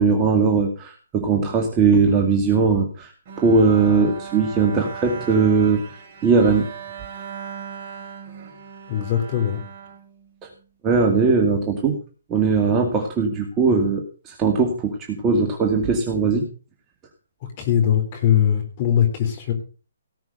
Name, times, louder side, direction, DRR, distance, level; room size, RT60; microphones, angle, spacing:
voice 1, 0.0-5.8 6.2-6.7 10.4-10.5 10.8-12.0 12.3-16.4, right 4 dB, 20° right, 1 dB, 2.2 m, -19 dB
Bowed string instrument, 3.3-10.6, right 6 dB, 35° right, 4.7 m, -38 dB
voice 2, 8.9-9.6 17.6-19.5, left 9 dB, 35° left, 4 dB, 4.0 m, -20 dB
18.0 x 6.2 x 6.4 m, 0.36 s
hypercardioid pair, 150°, 0 cm